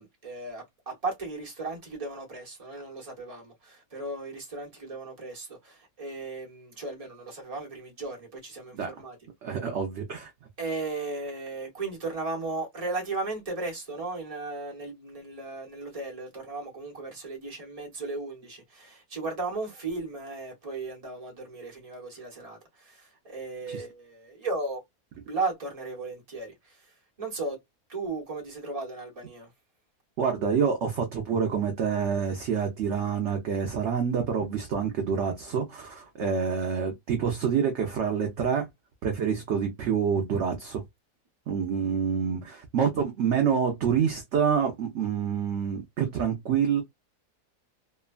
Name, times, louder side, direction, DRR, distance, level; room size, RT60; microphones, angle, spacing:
voice 1, 0.0-9.2 10.6-24.8 25.3-27.6 27.9-29.5, right 3 dB, 25° right, 0.9 m, -36 dB
voice 2, 9.4-10.3 23.7-23.8 30.2-38.7 39.0-40.8 41.5-46.8, right 7 dB, 65° right, 0.7 m, -27 dB
2.9 x 2.2 x 2.3 m
omnidirectional pair, 1.7 m